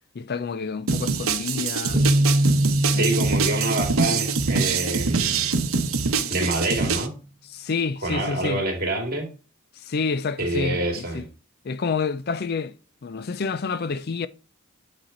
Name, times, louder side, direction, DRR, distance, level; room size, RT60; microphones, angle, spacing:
voice 1, 0.1-2.0 2.9-3.1 7.5-8.6 9.7-11.3 11.6-12.7 13.0-14.3, left 4 dB, 45° left, 0.4 m, -28 dB
sound 1, 0.9-7.1, right 5 dB, 75° right, 0.9 m, -25 dB
sound 2, 1.9-5.6, right 1 dB, 25° right, 0.9 m, -24 dB
voice 2, 2.8-5.5 6.3-7.1 8.0-9.3 10.4-11.3, right 2 dB, 45° right, 2.3 m, -26 dB
9.0 x 4.3 x 4.3 m
head